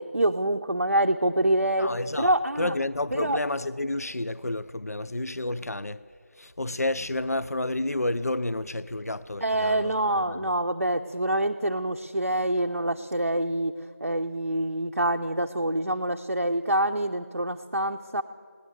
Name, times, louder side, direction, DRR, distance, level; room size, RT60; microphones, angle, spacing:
voice 1, 0.0-1.9 2.2-2.7 3.1-3.4 9.4-13.7 14.0-18.2, right 1 dB, 75° right, 0.6 m, -26 dB
voice 2, 1.8-6.0 6.3-10.5, left 2 dB, 85° left, 0.5 m, -30 dB
18.5 x 9.9 x 7.8 m
figure-of-eight pair, 175°, 8 cm